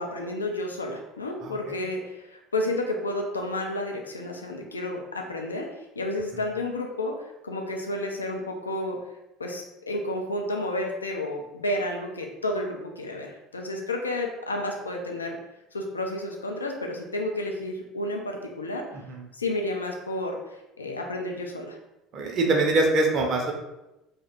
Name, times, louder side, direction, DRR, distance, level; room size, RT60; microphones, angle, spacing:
voice 1, 0.0-5.7 6.0-7.1 7.4-9.0 9.4-15.4 15.7-18.9 19.4-20.4 20.8-21.8, left 1 dB, 80° left, 2 dB, 0.4 m, -31 dB
voice 2, 1.4-1.8 18.9-19.3 22.1-23.5, right 2 dB, 45° right, 1 dB, 0.6 m, -24 dB
2.7 x 2.1 x 4.0 m, 0.95 s
figure-of-eight pair, 65°, 0 cm